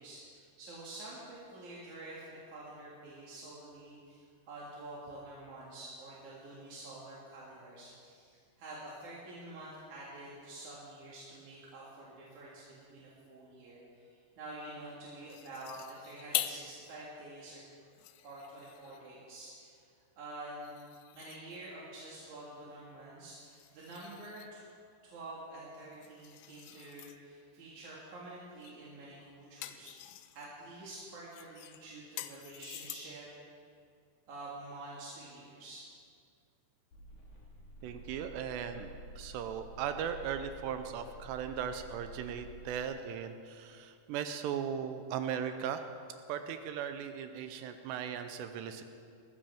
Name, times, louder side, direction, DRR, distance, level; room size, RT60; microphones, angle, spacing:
voice 1, 0.0-17.6 18.2-19.8 20.2-20.8 21.1-24.7 25.0-33.3 34.3-35.8, right 2 dB, 50° right, -6 dB, 2.7 m, -48 dB
sound 1, 15.3-16.7 17.2-17.3 17.8-19.1 20.6-21.8 23.4-24.6 25.8-27.2 28.6-28.9 29.2-30.5 31.3-33.3, left 14 dB, 90° left, 2.3 m, -43 dB
sound 2, 36.9-42.9, right 2 dB, 45° left, 4.0 m, -51 dB
voice 2, 37.8-38.9 39.2-45.8 46.3-48.8, right 8 dB, 80° right, 8 dB, 2.6 m, -38 dB
20.5 x 14.5 x 3.5 m, 2.4 s
omnidirectional pair, 5.4 m